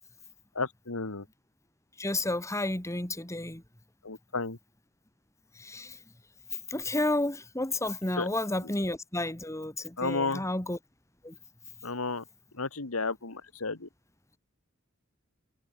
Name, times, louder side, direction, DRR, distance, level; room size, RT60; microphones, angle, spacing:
voice 1, 0.6-1.3 4.0-4.6 8.2-8.3 10.0-10.5 11.8-12.2 12.5-13.9, left 3 dB, 85° left, 1.9 m, -32 dB
voice 2, 2.0-3.6 5.6-6.0 6.7-10.8 11.2-11.3, left 1 dB, 15° left, 2.3 m, -31 dB
head